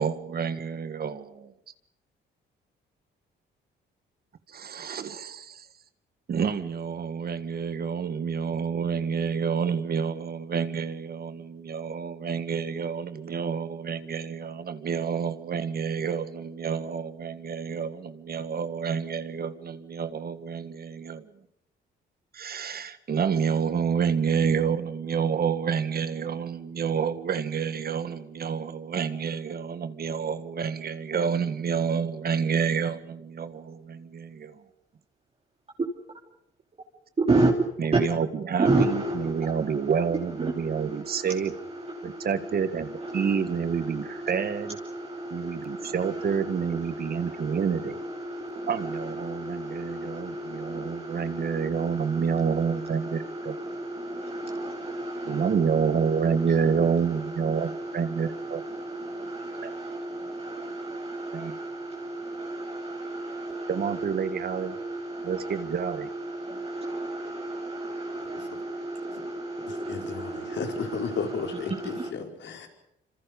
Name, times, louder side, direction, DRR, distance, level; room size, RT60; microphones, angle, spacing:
voice 1, 0.0-1.5 4.5-5.7 6.3-21.3 22.3-34.6 37.8-41.5 42.0-44.8 45.3-48.0 48.7-53.6 55.2-58.6 59.6-59.7 61.3-61.5 63.7-64.7 65.2-66.1, right 6 dB, 50° right, 1.7 m, -28 dB
voice 2, 37.2-37.5 37.9-38.0 38.5-72.1, right 2 dB, 30° right, 3.0 m, -32 dB
voice 3, 69.7-72.7, left 6 dB, 65° left, 4.8 m, -34 dB
26.5 x 26.5 x 5.4 m
cardioid pair, 90°, 20 cm